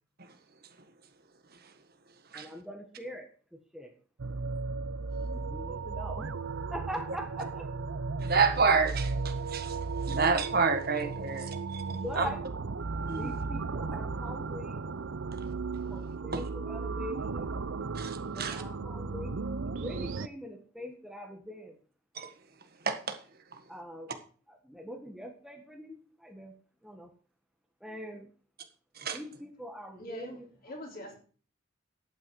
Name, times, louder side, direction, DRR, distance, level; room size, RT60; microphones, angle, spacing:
voice 1, 2.3-3.9 5.2-7.7 11.9-12.4 13.1-14.8 15.9-17.6 18.3-19.4 19.8-21.8 23.7-24.1 24.5-26.5 26.8-27.1 27.8-28.3 29.1-30.5, equal, ahead, 2 dB, 1.5 m, -43 dB
sound 1, 4.2-20.3, right 4 dB, 75° right, 0.6 m, -35 dB
voice 2, 8.2-9.8 10.1-11.8 12.1-12.3 13.1-13.3 17.9-18.6 22.1-22.3 22.8-23.2 29.0-29.2, right 4 dB, 50° right, 7 dB, 1.5 m, -28 dB
voice 3, 30.0-31.2, left 1 dB, 45° left, 1 dB, 3.6 m, -43 dB
12.0 x 8.9 x 4.8 m, 0.40 s
head